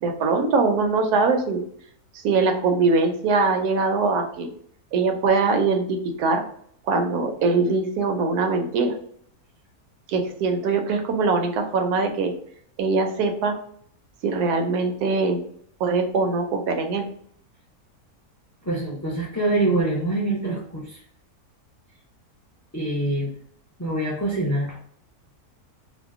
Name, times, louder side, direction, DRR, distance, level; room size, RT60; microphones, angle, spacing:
voice 1, 0.0-1.6 2.2-4.5 4.9-6.4 6.9-8.9 10.1-12.3 12.8-13.5 14.2-15.4 15.8-17.1, right 4 dB, 85° right, 4 dB, 1.1 m, -22 dB
voice 2, 18.6-21.0 22.7-23.3 23.8-24.8, right 2 dB, 30° left, -3 dB, 0.3 m, -25 dB
2.8 x 2.1 x 3.5 m, 0.63 s
omnidirectional pair, 1.6 m